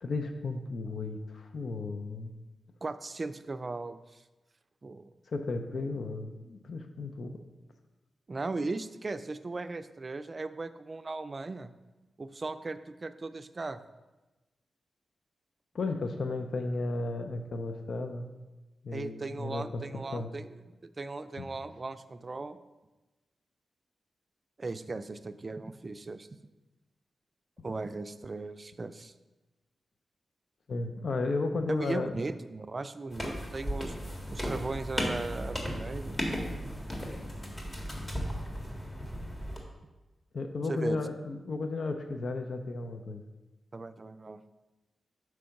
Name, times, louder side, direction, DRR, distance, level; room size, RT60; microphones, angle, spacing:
voice 1, 0.0-2.3 5.3-7.4 15.7-18.3 18.8-19.8 20.1-20.3 21.4-21.5 30.7-32.1 40.3-43.2, left 3 dB, 70° left, 6 dB, 0.5 m, -34 dB
voice 2, 2.8-4.0 4.8-5.1 8.3-11.7 12.2-13.8 18.9-20.5 21.0-22.6 24.6-26.3 27.6-29.1 31.7-33.9 34.3-36.3 40.7-41.0 43.7-44.4, right 3 dB, 40° right, 11 dB, 0.4 m, -37 dB
sound 1, 33.1-39.6, equal, 25° left, 1.7 m, -35 dB
6.2 x 4.6 x 5.8 m, 1.1 s
cardioid pair, 55°, 0 cm